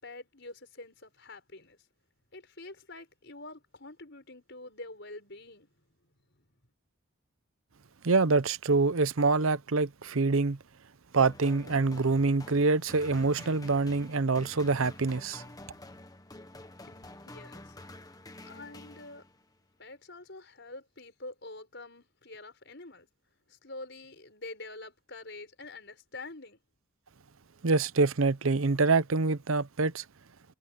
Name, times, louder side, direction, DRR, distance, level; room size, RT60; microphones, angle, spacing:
voice 1, 0.0-1.8 2.3-5.7 6.4-6.5 16.6-17.8 18.4-19.3 19.8-23.1 23.5-26.6, left 2 dB, 55° left, 6.5 m, -46 dB
voice 2, 8.0-10.6 11.1-15.4 27.6-30.0, right 3 dB, 70° right, 0.8 m, -26 dB
sound 1, 11.2-19.6, left 2 dB, 15° left, 1.3 m, -49 dB
head